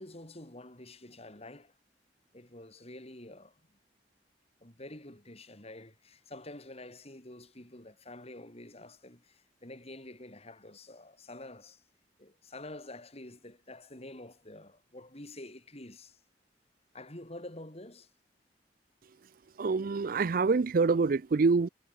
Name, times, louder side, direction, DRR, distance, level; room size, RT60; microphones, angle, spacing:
voice 1, 0.0-1.7 2.3-3.6 4.6-11.8 12.2-16.2 16.9-18.1, left 1 dB, 35° left, 4.8 m, -48 dB
voice 2, 19.6-21.7, right 4 dB, 55° right, 0.5 m, -26 dB
head